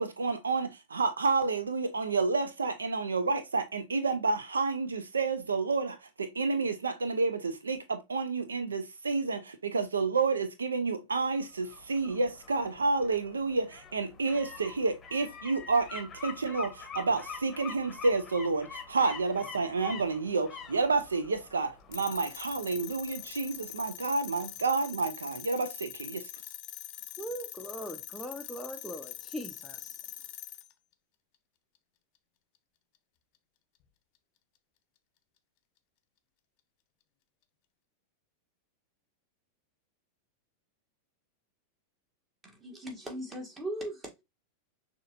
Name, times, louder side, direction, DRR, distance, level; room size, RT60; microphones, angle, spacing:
voice 1, 0.0-26.3, right 4 dB, 75° right, 0.6 m, -30 dB
sound 1, 11.4-24.2 24.6-24.7, left 6 dB, 20° left, 1.0 m, -46 dB
sound 2, 21.9-30.7, left 13 dB, 45° left, 0.5 m, -44 dB
voice 2, 27.2-30.1, equal, ahead, 0.6 m, -41 dB
voice 3, 42.4-44.2, right 1 dB, 15° right, 1.6 m, -39 dB
6.4 x 2.9 x 2.5 m
figure-of-eight pair, 90°, 0 cm